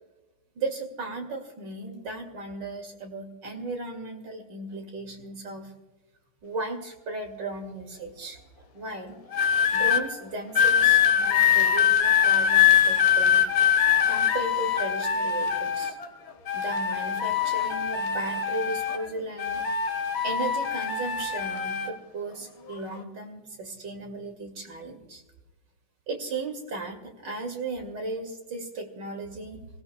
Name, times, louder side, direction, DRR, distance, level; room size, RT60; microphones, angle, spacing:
voice 1, 0.5-5.7 6.4-8.4 8.7-9.2 9.7-13.4 14.1-16.0 16.5-19.6 20.2-25.2 26.1-29.6, right 2 dB, 60° right, 3 dB, 3.0 m, -36 dB
sound 1, 9.3-10.0 10.6-16.1 16.5-19.1 19.4-21.9 22.7-23.0, left 8 dB, 75° left, 2.1 m, -23 dB
26.0 x 17.0 x 2.3 m, 1.1 s
omnidirectional pair, 2.2 m